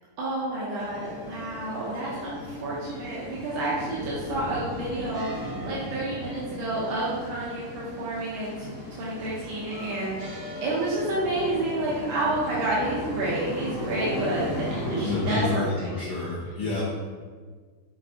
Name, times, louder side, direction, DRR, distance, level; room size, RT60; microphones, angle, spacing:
voice 1, 0.2-10.3 10.6-15.9, right 2 dB, 70° right, -7 dB, 1.5 m, -30 dB
sound 1, 0.8-15.5, left 1 dB, 35° right, 0.3 m, -36 dB
voice 2, 15.0-16.8, left 3 dB, 70° left, -5 dB, 1.0 m, -28 dB
5.4 x 3.2 x 2.6 m, 1.5 s
omnidirectional pair, 2.3 m